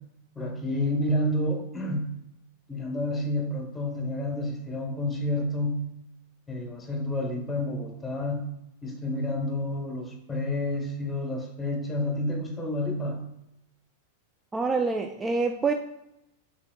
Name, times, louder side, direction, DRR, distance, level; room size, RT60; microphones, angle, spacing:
voice 1, 0.3-2.2 2.7-5.9 6.5-8.5 8.8-13.2, left 1 dB, 15° left, 2 dB, 1.1 m, -29 dB
voice 2, 14.5-15.7, right 4 dB, 15° right, 4 dB, 0.3 m, -26 dB
6.0 x 3.5 x 2.2 m, 0.86 s
hypercardioid pair, 105°, 0 cm